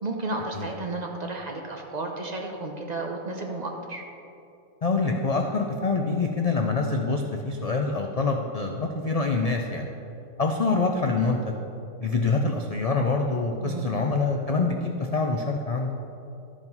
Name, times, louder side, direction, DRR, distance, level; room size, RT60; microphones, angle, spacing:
voice 1, 0.0-4.0 13.6-13.9, right 2 dB, 40° right, 1 dB, 0.7 m, -32 dB
voice 2, 4.8-9.9 10.4-11.6 12.0-15.9, left 3 dB, 70° left, 3 dB, 0.3 m, -25 dB
12.5 x 5.0 x 5.4 m, 2.8 s
omnidirectional pair, 1.4 m